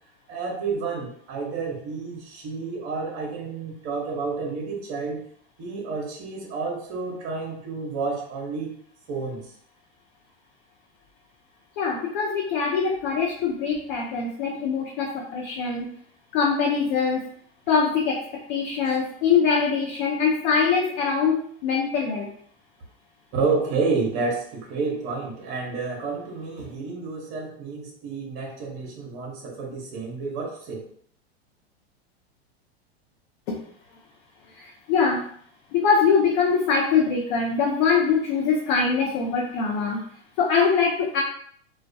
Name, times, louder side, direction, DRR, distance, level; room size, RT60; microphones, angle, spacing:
voice 1, 0.3-5.2 5.6-8.7 9.1-9.5 23.3-30.8, right 4 dB, 45° right, -1 dB, 0.9 m, -30 dB
voice 2, 11.8-15.9 16.3-17.3 17.7-18.2 18.5-22.3 33.5-33.6 34.5-35.2 35.7-40.0 40.4-41.2, left 5 dB, 50° left, -2 dB, 0.6 m, -23 dB
2.3 x 2.2 x 2.6 m, 0.62 s
hypercardioid pair, 125°, 32 cm